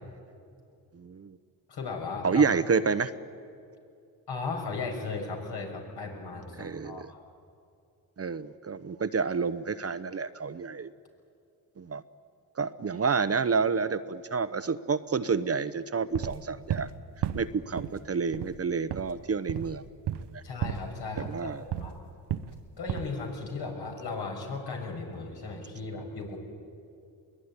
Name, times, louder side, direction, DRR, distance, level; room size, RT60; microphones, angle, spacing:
voice 1, 0.9-1.4 2.2-3.1 6.6-7.1 8.2-10.9 11.8-12.0 12.6-16.9 17.3-19.9 20.3-20.4 21.2-21.6, right 5 dB, 35° right, 13 dB, 0.9 m, -29 dB
voice 2, 1.7-2.5 4.3-7.1 20.4-22.0 22.8-26.4, left 4 dB, 70° left, 1 dB, 6.0 m, -36 dB
Wood Footsteps, 16.1-16.9 17.2-18.0 18.3-18.6 18.9-19.1 19.5-19.8 20.1-20.4 20.6-20.9 21.2-22.0 22.3-22.6 22.9-23.2, right 10 dB, 70° right, 1.0 m, -33 dB
22.0 x 19.5 x 9.8 m, 2.5 s
cardioid pair, 65°, 42 cm